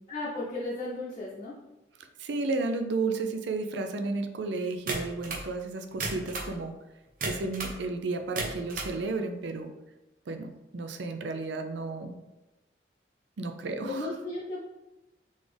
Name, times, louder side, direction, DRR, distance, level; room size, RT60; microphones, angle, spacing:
voice 1, 0.1-1.6 13.8-14.6, left 2 dB, 30° left, -7 dB, 0.7 m, -35 dB
voice 2, 2.2-6.7 7.2-9.7 10.3-12.2 13.4-14.1, right 3 dB, 75° right, 6 dB, 0.5 m, -32 dB
sound 1, 4.9-5.5 5.9-6.5 7.2-7.8 8.2-8.9, right 3 dB, 45° right, 0.8 m, -33 dB
4.1 x 3.5 x 3.3 m, 0.99 s
head